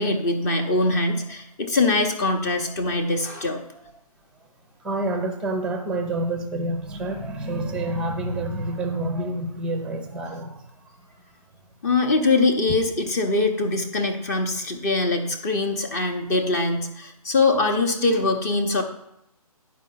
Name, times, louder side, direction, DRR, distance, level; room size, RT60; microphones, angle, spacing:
voice 1, 0.0-3.6 11.8-18.8, left 3 dB, 25° left, 4 dB, 0.8 m, -23 dB
voice 2, 4.8-10.7, right 2 dB, 5° right, 6 dB, 0.6 m, -28 dB
10.5 x 4.7 x 5.7 m, 0.80 s
figure-of-eight pair, 150°, 20 cm